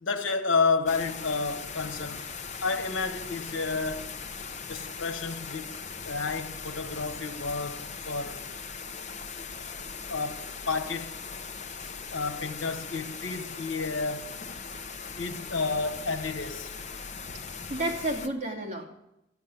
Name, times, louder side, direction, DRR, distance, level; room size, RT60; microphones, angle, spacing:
voice 1, 0.0-2.2 2.6-4.0 4.7-5.7 6.0-8.5 10.1-11.2 12.1-14.5 15.2-16.7, left 4 dB, 80° left, 1.3 m, -31 dB
sound 1, 0.9-18.3, left 5 dB, 35° left, 0.8 m, -40 dB
voice 2, 17.5-18.8, right 1 dB, 35° right, 2.5 m, -31 dB
13.5 x 7.4 x 9.6 m
head